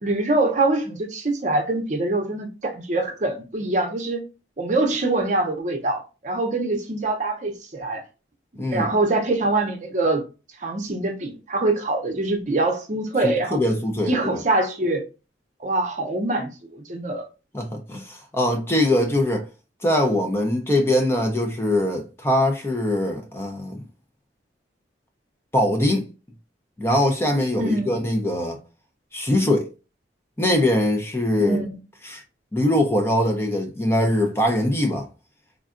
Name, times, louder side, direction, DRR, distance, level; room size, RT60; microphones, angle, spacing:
voice 1, 0.0-4.2 4.6-8.0 8.7-10.2 10.6-13.6 14.1-15.0 15.6-17.3 27.6-27.9 31.4-31.7, right 2 dB, 40° right, 0.7 m, -24 dB
voice 2, 8.6-8.9 13.2-14.4 17.5-19.5 19.8-23.8 25.5-26.1 26.8-28.6 29.1-29.7 30.4-31.6 32.0-32.2 32.5-35.1, left 1 dB, 15° left, 0.5 m, -22 dB
3.6 x 2.3 x 2.4 m
head